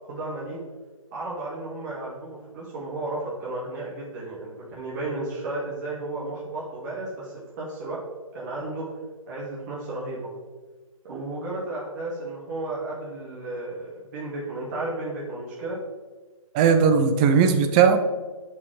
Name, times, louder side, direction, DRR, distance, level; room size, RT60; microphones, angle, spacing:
voice 1, 0.1-0.6 1.1-8.0 8.3-8.9 9.3-10.3 11.0-15.8, right 2 dB, 30° right, -6 dB, 2.1 m, -33 dB
voice 2, 16.5-18.0, right 6 dB, 15° right, 7 dB, 0.4 m, -18 dB
10.5 x 5.6 x 3.3 m, 1.3 s
figure-of-eight pair, 140°, 18 cm